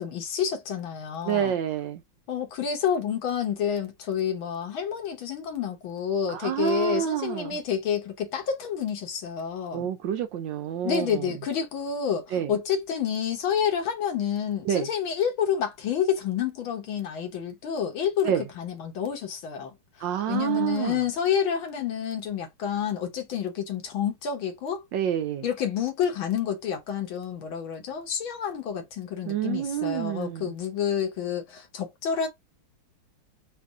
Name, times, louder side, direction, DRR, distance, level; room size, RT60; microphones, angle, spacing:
voice 1, 0.0-1.6 2.3-9.9 10.8-19.7 20.3-24.9 25.4-32.3, left 8 dB, 70° left, 1.8 m, -29 dB
voice 2, 1.2-2.0 6.3-7.6 9.7-11.3 12.3-12.5 14.6-14.9 18.3-18.4 20.0-21.0 24.9-25.4 29.3-30.5, right 10 dB, 70° right, 1.2 m, -28 dB
4.2 x 2.6 x 3.6 m
omnidirectional pair, 2.3 m